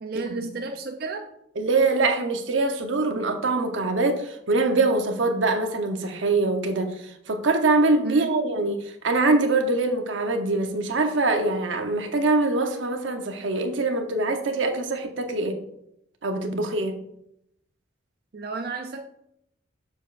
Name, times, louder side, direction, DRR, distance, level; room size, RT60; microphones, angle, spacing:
voice 1, 0.0-1.3 8.0-8.3 18.3-19.0, right 3 dB, 50° right, 4 dB, 0.5 m, -32 dB
voice 2, 1.6-6.9 7.3-15.6 16.2-17.0, right 2 dB, 85° right, 5 dB, 0.9 m, -23 dB
7.2 x 7.0 x 2.5 m, 0.77 s
head